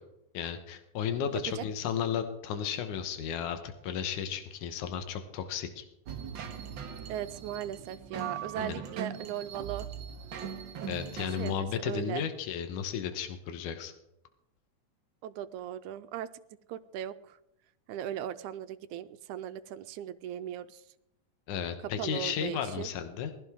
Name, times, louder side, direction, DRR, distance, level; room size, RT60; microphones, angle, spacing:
voice 1, 0.3-5.8 8.6-8.8 10.9-13.9 21.5-23.3, left 8 dB, 80° left, 7 dB, 2.6 m, -34 dB
voice 2, 1.3-1.6 7.1-9.9 11.3-12.2 15.2-16.4 16.7-17.4 17.9-20.8 22.0-22.9, right 10 dB, 80° right, 13 dB, 2.1 m, -38 dB
sound 1, 6.1-11.5, right 8 dB, 60° right, 1.3 m, -40 dB
21.0 x 15.0 x 3.7 m, 0.83 s
omnidirectional pair, 3.5 m